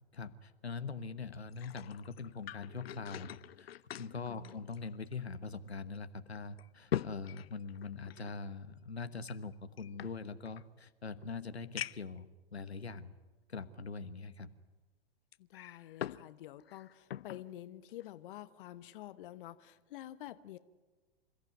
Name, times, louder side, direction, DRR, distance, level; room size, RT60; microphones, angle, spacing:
voice 1, 0.1-3.3 3.6-3.7 4.0-13.1 13.5-14.5, left 4 dB, 90° left, 11 dB, 1.2 m, -43 dB
sound 1, 1.3-5.3 5.7-5.8 6.4-8.3 9.2-10.7 11.2-11.3 11.8-12.2 12.9-13.0 15.3-16.3 16.6-17.5 17.9-18.1, left 11 dB, 70° left, 0.7 m, -43 dB
voice 2, 4.1-4.6 15.4-20.6, left 13 dB, 55° left, 13 dB, 1.0 m, -49 dB
27.0 x 15.0 x 9.2 m, 1.3 s
figure-of-eight pair, 100°, 31 cm